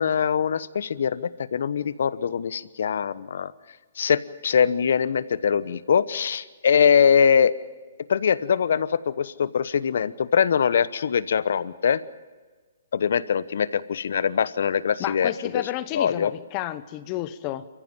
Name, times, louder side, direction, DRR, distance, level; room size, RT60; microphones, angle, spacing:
voice 1, 0.0-3.5 4.0-7.5 8.1-12.0 12.9-15.6 15.9-16.3, left 7 dB, 65° left, 16 dB, 1.0 m, -22 dB
voice 2, 15.0-17.7, left 14 dB, 30° left, 14 dB, 1.1 m, -31 dB
28.5 x 15.0 x 7.5 m, 1.4 s
hypercardioid pair, 130°, 0 cm